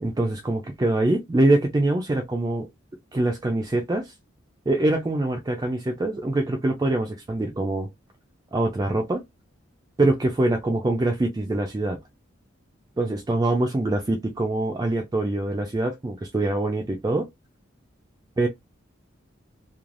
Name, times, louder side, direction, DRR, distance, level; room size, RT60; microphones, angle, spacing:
voice 1, 0.0-2.7 3.1-4.1 4.7-7.9 8.5-9.2 10.0-12.0 13.0-17.3 18.4-18.5, right 2 dB, 20° right, 0.3 m, -24 dB
3.1 x 2.2 x 2.5 m
head